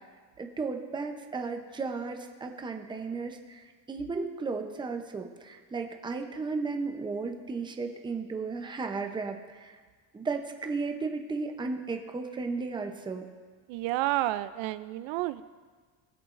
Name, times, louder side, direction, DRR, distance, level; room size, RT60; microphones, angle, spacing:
voice 1, 0.4-9.7 10.1-13.3, right 4 dB, 10° right, 4 dB, 0.6 m, -34 dB
voice 2, 13.7-15.4, right 16 dB, 70° right, 14 dB, 0.5 m, -30 dB
19.0 x 7.9 x 2.5 m, 1.5 s
cardioid pair, 135°, 47 cm